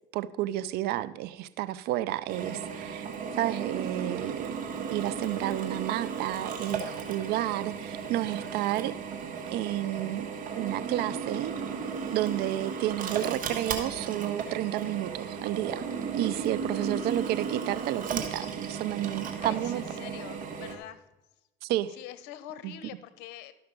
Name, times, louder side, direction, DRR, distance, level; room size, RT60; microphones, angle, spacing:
voice 1, 0.1-3.0 3.3-4.4 4.9-8.9 9.5-10.3 10.6-11.5 12.1-15.9 16.1-19.8 21.6-22.0 22.6-22.7, right 14 dB, 65° right, 17 dB, 0.5 m, -31 dB
Drill, 2.3-20.7, right 6 dB, 50° right, 1.6 m, -35 dB
voice 2, 16.7-17.1 19.4-21.0 22.0-23.5, left 12 dB, 75° left, 13 dB, 0.8 m, -45 dB
12.5 x 5.8 x 5.2 m, 0.97 s
supercardioid pair, 85°, 18 cm